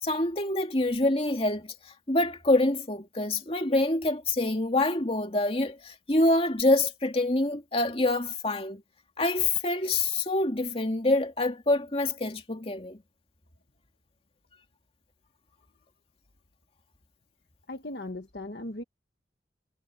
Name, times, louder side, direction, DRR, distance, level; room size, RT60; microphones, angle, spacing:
voice 1, 0.0-1.7 2.1-8.8 9.2-13.0, left 2 dB, 30° left, 2.5 m, -26 dB
voice 2, 17.7-18.8, left 1 dB, 65° left, 1.6 m, -37 dB
head